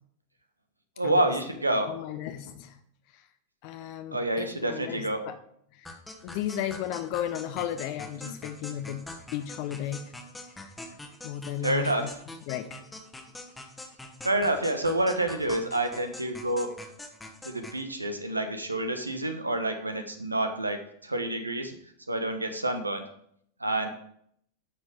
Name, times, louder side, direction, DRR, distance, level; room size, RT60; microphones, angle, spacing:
voice 1, 1.0-1.9 4.1-5.2 8.2-8.3 11.6-12.0 14.2-16.7 17.4-21.7 22.1-23.0 23.6-23.9, right 1 dB, 80° right, 7 dB, 1.1 m, -28 dB
voice 2, 1.9-2.8 3.1-3.3 3.6-5.4 5.7-5.9 6.2-10.1 11.2-12.1 12.5-12.8, left 11 dB, 45° left, 9 dB, 0.7 m, -34 dB
sound 1, 5.9-17.8, left 2 dB, 10° left, 1.3 m, -44 dB
9.9 x 6.3 x 4.9 m, 0.68 s
figure-of-eight pair, 90°, 0 cm